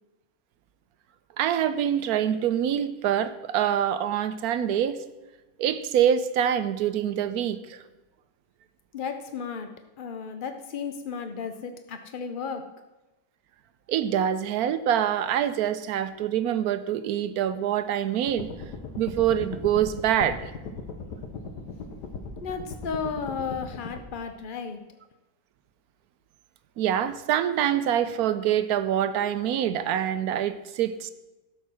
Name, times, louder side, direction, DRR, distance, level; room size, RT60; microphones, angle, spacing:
voice 1, 1.4-5.0 5.6-7.8 13.9-18.5 19.0-20.4 26.8-31.1, right 10 dB, 70° right, 12 dB, 1.0 m, -25 dB
voice 2, 8.9-9.7 10.0-12.6 22.4-24.8, left 5 dB, 70° left, 7 dB, 0.4 m, -34 dB
sound 1, 18.3-24.0, left 4 dB, 90° left, 1.7 m, -38 dB
12.5 x 5.5 x 6.1 m, 1.1 s
omnidirectional pair, 1.7 m